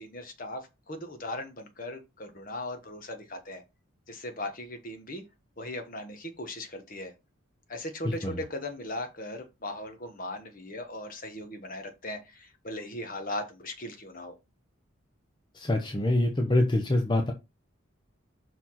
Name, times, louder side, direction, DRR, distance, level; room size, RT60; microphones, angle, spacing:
voice 1, 0.0-3.6 4.1-5.2 5.6-7.1 7.7-14.3, left 1 dB, 40° left, 1.4 m, -38 dB
voice 2, 8.0-8.4 15.5-17.3, left 1 dB, 20° left, 0.8 m, -25 dB
5.7 x 4.8 x 5.6 m
head